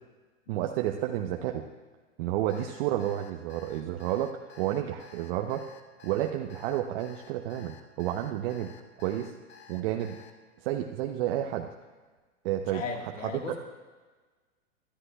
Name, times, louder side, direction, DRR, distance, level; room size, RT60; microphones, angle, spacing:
voice 1, 0.5-1.7 2.2-5.7 6.0-8.7 9.0-9.3 9.7-10.2 10.6-11.7 12.4-12.8, right 12 dB, 45° right, 3 dB, 0.8 m, -31 dB
Alarm, 2.5-10.3, left 6 dB, 30° left, 1.1 m, -52 dB
voice 2, 12.7-13.6, left 4 dB, 80° left, 3 dB, 1.7 m, -36 dB
23.5 x 13.0 x 2.3 m, 1.3 s
hypercardioid pair, 110°, 38 cm